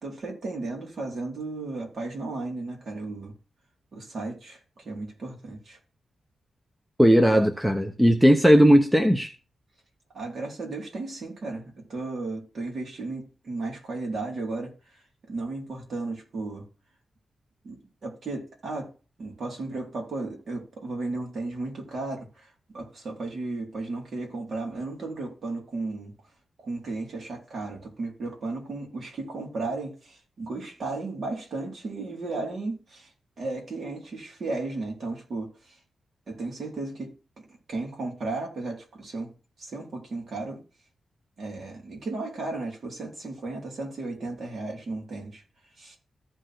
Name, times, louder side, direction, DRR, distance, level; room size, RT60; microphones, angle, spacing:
voice 1, 0.0-3.3 3.9-5.8 10.1-15.0 15.3-16.6 17.6-18.9 19.2-22.5 22.7-26.1 26.6-33.1 33.4-35.8 36.3-37.1 37.4-39.3 39.6-40.6 41.4-45.4 45.8-46.0, right 3 dB, 45° right, 4.1 m, -34 dB
voice 2, 7.0-9.3, equal, 5° right, 0.8 m, -17 dB
14.5 x 4.9 x 3.9 m
wide cardioid pair, 160°, 0 cm